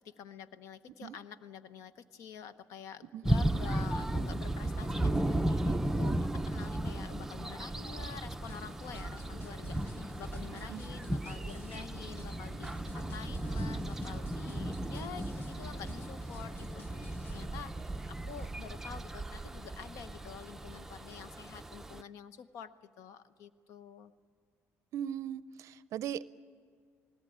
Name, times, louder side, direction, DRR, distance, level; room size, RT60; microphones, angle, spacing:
voice 1, 0.0-6.2 6.5-24.1, left 7 dB, 75° left, 13 dB, 0.9 m, -48 dB
sound 1, 3.2-22.0, right 1 dB, 5° right, 0.5 m, -35 dB
sound 2, 8.4-17.5, left 2 dB, 40° left, 1.5 m, -50 dB
voice 2, 24.9-26.3, right 10 dB, 65° right, 17 dB, 0.5 m, -39 dB
20.0 x 18.0 x 8.6 m, 2.1 s
cardioid pair, 105°, 6 cm